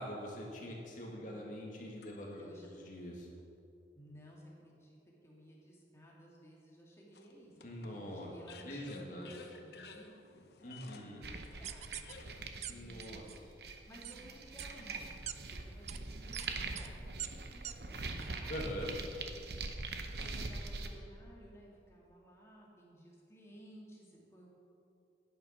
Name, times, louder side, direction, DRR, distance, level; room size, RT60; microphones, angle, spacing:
voice 1, 0.0-3.3 7.6-8.3 8.6-9.3 10.6-11.2 12.7-13.2 18.5-19.0, equal, 45° left, -2 dB, 2.3 m, -43 dB
sound 1, 0.8-2.5 3.2-3.3 7.1-12.5, left 4 dB, 65° left, 0.9 m, -56 dB
voice 2, 2.4-2.7 3.9-10.1 11.0-12.1 12.7-13.3 13.8-18.9 20.0-24.5, right 1 dB, 15° left, -4 dB, 2.2 m, -57 dB
sound 2, 11.2-20.9, right 3 dB, 65° right, 0.9 m, -43 dB
sound 3, 11.6-12.1 12.6-12.7 13.0-13.4 14.0-14.2 14.6-14.7 15.3-15.4 15.9-16.0 16.3-16.5 16.8-16.9 17.2-17.3 17.6-17.7 18.2-18.3, right 11 dB, 40° right, 0.4 m, -42 dB
11.0 x 9.0 x 5.9 m, 2.6 s
head